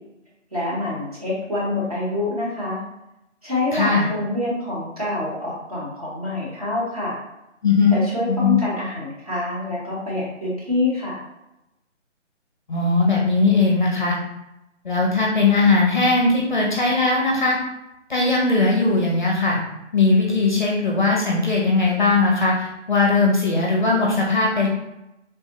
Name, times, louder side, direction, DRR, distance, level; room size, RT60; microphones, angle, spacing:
voice 1, 0.5-2.8 3.4-7.2 7.9-11.2, left 2 dB, 30° right, -7 dB, 0.9 m, -26 dB
voice 2, 3.7-4.1 7.6-8.0 8.3-8.6 12.7-14.2 14.8-17.6 18.1-19.6 19.9-24.7, left 3 dB, 40° left, -3 dB, 0.5 m, -19 dB
3.3 x 2.1 x 2.8 m, 0.90 s
hypercardioid pair, 170°, 37 cm